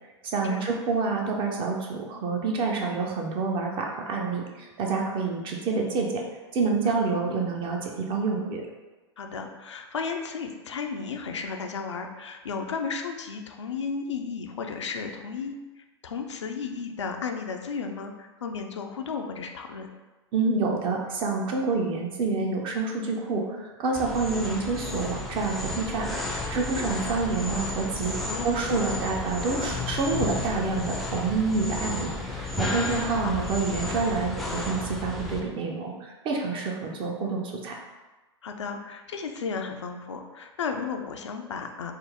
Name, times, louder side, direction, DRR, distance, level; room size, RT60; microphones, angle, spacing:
voice 1, 0.2-6.2 6.5-8.6 20.3-26.1 26.5-37.7, right 4 dB, 35° right, 0 dB, 0.7 m, -28 dB
voice 2, 9.2-19.9 28.3-28.6 33.2-33.4 38.4-41.9, left 5 dB, 80° left, 4 dB, 0.5 m, -34 dB
sound 1, 23.9-35.4, left 2 dB, ahead, 0.5 m, -32 dB
4.4 x 2.0 x 3.5 m, 1.2 s
hypercardioid pair, 100°, 15 cm